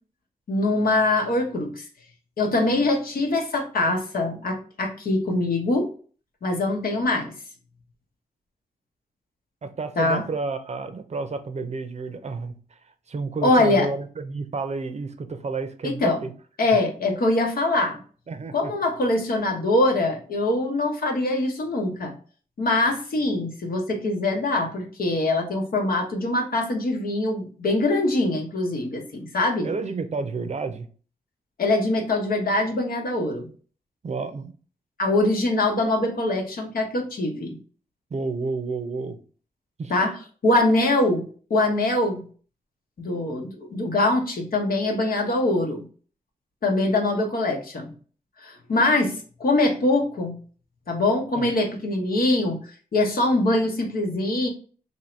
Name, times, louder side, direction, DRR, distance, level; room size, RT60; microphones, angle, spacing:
voice 1, 0.5-1.8 2.4-5.9 6.4-7.3 10.0-10.2 13.4-13.9 15.8-16.2 16.6-18.0 18.5-22.1 22.6-29.7 31.6-33.5 35.0-37.6 39.9-40.1 40.4-42.2 43.0-45.8 46.6-47.9 48.4-50.4 50.9-52.6 52.9-54.5, left 2 dB, 70° left, 1.1 m, -23 dB
voice 2, 9.6-12.5 13.1-16.3 18.3-18.7 29.6-30.9 34.0-34.5 38.1-39.2 39.8-40.1 51.3-51.5, right 4 dB, 45° right, 0.6 m, -30 dB
2.7 x 2.7 x 4.4 m
cardioid pair, 70°, 16 cm